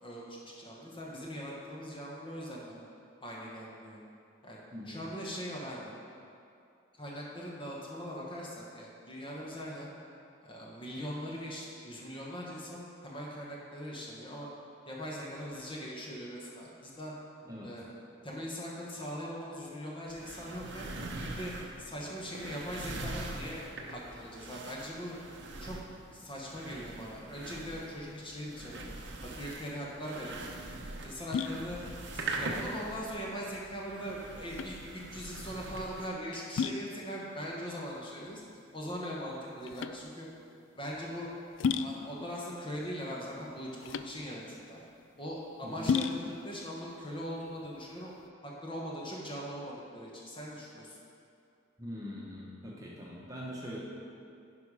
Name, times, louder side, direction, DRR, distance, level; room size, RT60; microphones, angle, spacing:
voice 1, 0.0-2.8 3.2-4.0 4.4-4.6 4.8-5.9 7.0-9.9 10.4-14.5 14.9-17.1 17.6-17.8 18.2-20.9 21.2-21.5 21.8-25.2 25.6-25.8 26.1-28.8 29.2-30.4 31.0-31.8 32.1-34.8 35.1-38.4 38.7-40.3 40.7-41.3 41.7-44.8 45.2-48.1 48.4-51.0, equal, 25° left, -4 dB, 1.1 m, -41 dB
voice 2, 4.7-5.0 17.4-17.7 45.6-45.9 51.8-53.8, equal, 15° right, -5 dB, 1.2 m, -42 dB
sound 1, 20.1-36.1, right 2 dB, 60° right, 0.8 m, -42 dB
sound 2, 29.7-48.3, left 6 dB, 70° left, 0.3 m, -37 dB
10.5 x 5.3 x 4.9 m, 2.5 s
head